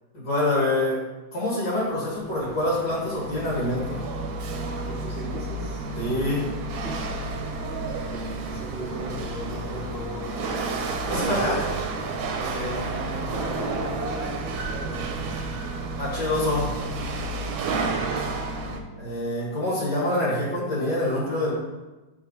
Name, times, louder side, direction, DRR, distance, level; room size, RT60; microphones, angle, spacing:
voice 1, 0.1-1.0 1.3-4.0 6.0-6.5 11.1-11.6 16.0-16.7 18.9-21.5, left 1 dB, 60° left, -6 dB, 2.7 m, -26 dB
Chatter / Hiss / Rattle, 1.9-18.8, right 3 dB, 80° right, 1.5 m, -31 dB
voice 2, 4.9-5.8 6.8-7.0 8.1-10.8 11.1-11.6 12.3-15.3 17.8-18.3, equal, 30° right, -8 dB, 1.6 m, -37 dB
6.7 x 5.7 x 3.1 m, 1.1 s
omnidirectional pair, 2.1 m